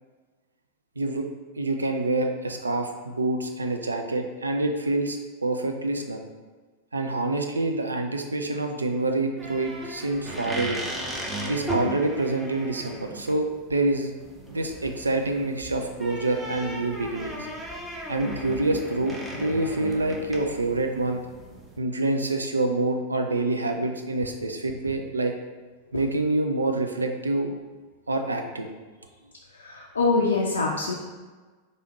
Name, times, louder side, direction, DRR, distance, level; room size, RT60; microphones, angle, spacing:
voice 1, 1.0-1.3 1.6-6.2 6.9-10.8 11.5-14.1 14.5-17.5 18.1-21.2 21.8-25.3 25.9-27.5 28.1-28.7, right 2 dB, 80° right, 5 dB, 0.4 m, -27 dB
sound 1, 9.4-21.8, right 1 dB, 10° right, 0.6 m, -36 dB
voice 2, 29.5-30.9, left 3 dB, 75° left, -2 dB, 0.4 m, -24 dB
4.7 x 2.6 x 3.0 m, 1.3 s
figure-of-eight pair, 90°, 0 cm